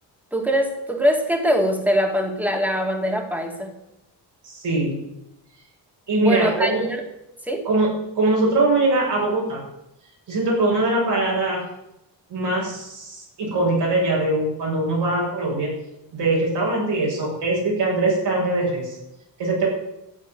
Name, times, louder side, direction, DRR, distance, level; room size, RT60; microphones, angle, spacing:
voice 1, 0.3-3.7 6.2-7.0 7.4-7.7, equal, 5° right, 2 dB, 2.5 m, -22 dB
voice 2, 4.4-5.0 6.1-6.8 7.7-7.9 8.2-9.6 10.3-11.6 12.3-15.7 16.1-19.0 19.4-19.7, right 2 dB, 75° right, -4 dB, 7.0 m, -22 dB
13.0 x 8.6 x 9.5 m, 0.88 s
wide cardioid pair, 145°, 41 cm